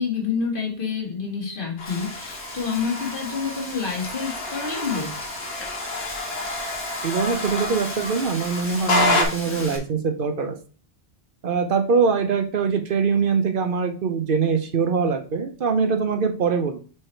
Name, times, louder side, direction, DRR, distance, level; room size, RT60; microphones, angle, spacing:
voice 1, 0.0-5.2, left 5 dB, 55° left, 0 dB, 1.8 m, -28 dB
sound 1, 1.8-9.2, left 2 dB, 75° left, 1.4 m, -28 dB
Frying (food), 1.9-9.8, left 1 dB, 15° left, 1.3 m, -37 dB
voice 2, 7.0-10.6 11.4-16.8, right 5 dB, 60° right, 7 dB, 0.9 m, -23 dB
4.8 x 4.7 x 4.3 m, 0.37 s
omnidirectional pair, 1.0 m